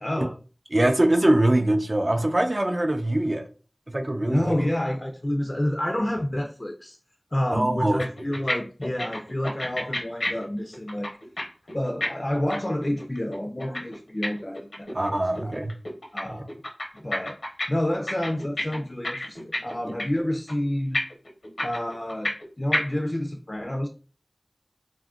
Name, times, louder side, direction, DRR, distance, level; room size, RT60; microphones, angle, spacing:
voice 1, 0.0-0.3 4.2-7.0 7.3-11.1 11.7-15.5 16.1-16.5 16.9-17.4 17.7-21.0 21.6-22.3 22.6-23.9, left 1 dB, 35° left, 0.3 m, -29 dB
voice 2, 0.7-3.5 3.9-4.6 7.5-8.0 14.9-15.7 16.3-16.4, right 1 dB, 50° right, 0.4 m, -23 dB
sound 1, 7.7-7.8 8.0-8.5 8.8-11.4 11.7-15.1 15.4-16.2 16.5-17.7 17.9-19.7 20.0-20.2 20.5-20.6 20.9-22.4 22.7-22.8, left 1 dB, 85° left, 0.7 m, -29 dB
2.4 x 2.1 x 3.5 m
wide cardioid pair, 50°, 0 cm